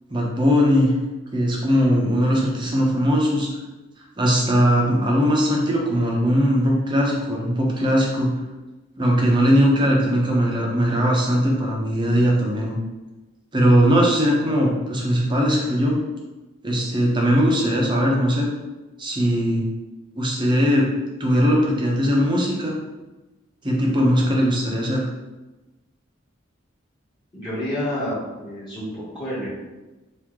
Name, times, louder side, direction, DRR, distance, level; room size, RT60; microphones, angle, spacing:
voice 1, 0.1-1.0 1.3-3.5 4.2-8.3 9.0-12.8 13.5-16.0 16.6-18.5 19.0-19.6 20.1-20.9 21.2-22.8 23.6-25.1, equal, 20° right, -2 dB, 0.7 m, -19 dB
voice 2, 27.3-29.5, equal, 20° left, -11 dB, 1.2 m, -29 dB
4.7 x 2.7 x 3.6 m, 1.1 s
head